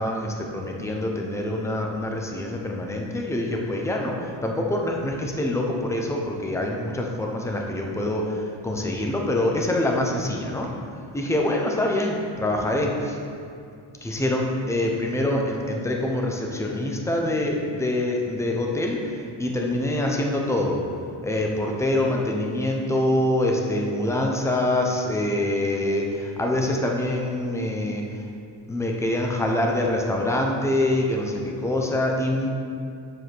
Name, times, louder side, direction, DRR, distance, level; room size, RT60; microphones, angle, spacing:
voice 1, 0.0-10.9 11.1-13.2 14.0-20.8 21.2-28.2 28.7-32.5, left 1 dB, 5° left, 0 dB, 0.8 m, -25 dB
7.6 x 5.0 x 6.1 m, 2.4 s
wide cardioid pair, 135°, 44 cm